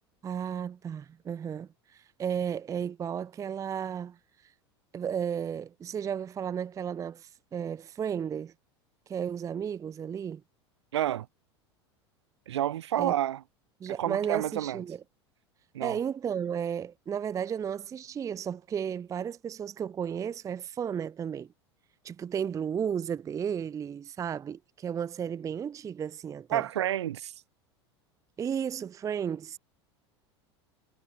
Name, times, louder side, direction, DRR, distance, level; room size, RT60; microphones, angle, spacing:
voice 1, 0.2-4.2 4.9-8.5 9.1-10.4 13.0-13.1 13.8-15.0 15.8-21.5 22.0-26.7 28.4-29.6, right 8 dB, 20° right, 0.4 m, -33 dB
voice 2, 10.9-11.3 12.5-13.4 14.0-14.8 15.7-16.0 26.5-27.3, right 12 dB, 75° right, 1.3 m, -29 dB
hypercardioid pair, 80°, 14 cm